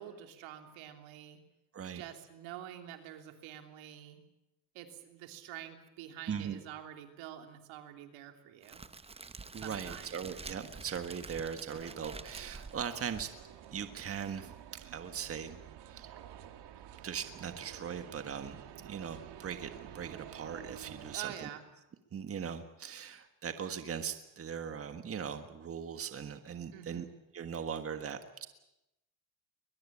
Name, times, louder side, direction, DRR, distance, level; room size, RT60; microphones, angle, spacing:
voice 1, 0.0-1.4 1.9-4.2 4.7-8.8 9.6-10.2 21.1-21.6 26.7-27.1, right 11 dB, 80° right, 5 dB, 3.3 m, -47 dB
voice 2, 6.3-6.6 9.5-13.3 13.7-14.6 14.8-16.2 17.0-21.5 22.1-27.0 27.3-28.5, right 7 dB, 30° right, 8 dB, 1.6 m, -40 dB
Crackle, 8.6-13.7, right 4 dB, 15° right, 0.9 m, -48 dB
sound 1, 11.7-21.2, right 10 dB, 60° right, 2.5 m, -51 dB
21.5 x 21.0 x 8.7 m, 0.92 s
cardioid pair, 120°, 46 cm